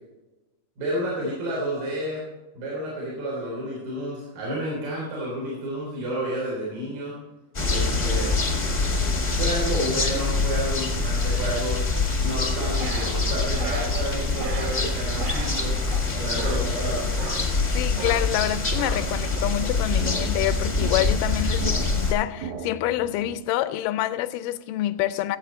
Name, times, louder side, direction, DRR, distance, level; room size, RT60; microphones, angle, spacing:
voice 1, 0.8-2.2 2.5-7.1 7.7-8.3 9.4-11.8 12.2-15.7 16.1-17.1, right 1 dB, 85° right, 5.1 m, -30 dB
sound 1, 7.5-22.1, left 3 dB, 40° left, 0.6 m, -25 dB
sound 2, 12.5-23.4, right 6 dB, 70° right, 1.7 m, -38 dB
voice 2, 17.7-25.4, left 14 dB, 85° left, 2.2 m, -27 dB
16.5 x 8.2 x 4.4 m
omnidirectional pair, 3.8 m